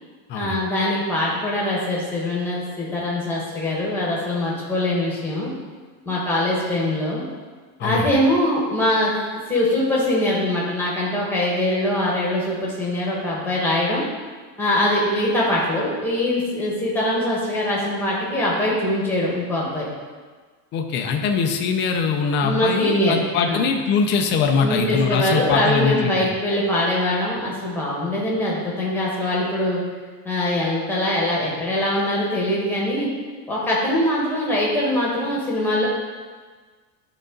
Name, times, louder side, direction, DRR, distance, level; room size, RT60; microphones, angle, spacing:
voice 1, 0.3-5.5 6.0-7.3 7.8-9.1 9.5-14.0 14.6-19.9 22.4-23.2 23.5-23.6 24.6-29.8 30.2-33.1 33.5-35.9, left 1 dB, 5° left, -5 dB, 1.5 m, -22 dB
voice 2, 20.7-26.3, left 5 dB, 25° left, 3 dB, 0.4 m, -22 dB
11.0 x 4.0 x 3.9 m, 1.4 s
cardioid pair, 170°, 46 cm